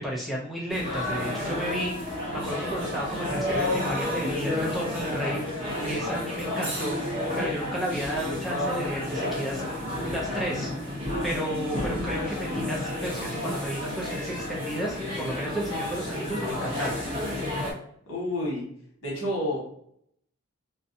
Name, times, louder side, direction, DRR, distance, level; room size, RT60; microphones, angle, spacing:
voice 1, 0.0-9.6 10.0-10.7 11.2-17.0, equal, ahead, -4 dB, 0.3 m, -33 dB
sound 1, 0.7-17.7, left 1 dB, 25° right, 0.7 m, -31 dB
voice 2, 5.6-6.0 18.1-18.6 19.0-19.6, left 1 dB, 75° left, -4 dB, 1.2 m, -30 dB
2.5 x 2.1 x 2.6 m, 0.66 s
head